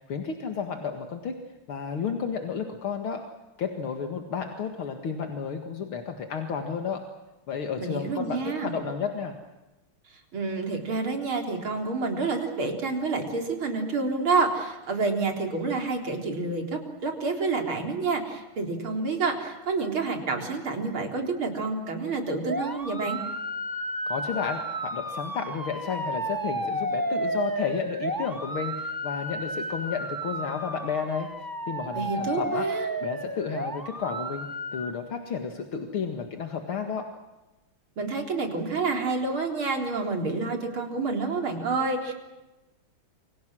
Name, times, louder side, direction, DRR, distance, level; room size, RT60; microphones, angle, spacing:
voice 1, 0.1-1.4 1.7-3.2 3.6-7.0 7.5-9.4 24.1-31.3 31.7-32.7 33.0-37.1, left 6 dB, 80° left, 5 dB, 2.7 m, -32 dB
voice 2, 7.8-8.7 10.3-23.2 31.9-32.9 38.0-42.1, right 3 dB, 75° right, 3 dB, 4.6 m, -28 dB
sound 1, 22.4-34.9, right 1 dB, 10° right, 1.6 m, -32 dB
28.5 x 25.5 x 6.3 m, 1.0 s
omnidirectional pair, 2.3 m